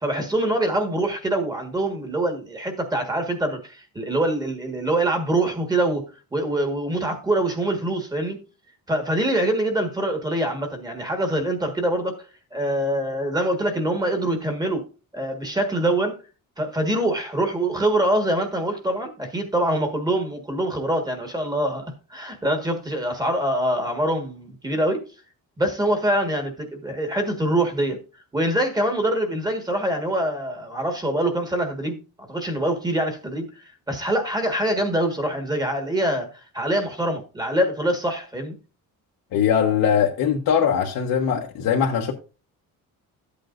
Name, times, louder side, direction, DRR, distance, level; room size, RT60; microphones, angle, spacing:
voice 1, 0.0-6.0 6.3-8.4 8.9-12.2 12.5-14.8 15.1-16.1 16.6-21.8 22.1-25.1 25.6-28.0 28.3-32.0 32.3-33.5 33.9-36.3 36.5-38.5, right 1 dB, 10° right, 1.6 m, -24 dB
voice 2, 39.3-42.1, left 8 dB, 75° left, 1.3 m, -21 dB
13.0 x 8.5 x 2.6 m
cardioid pair, 170°, 34 cm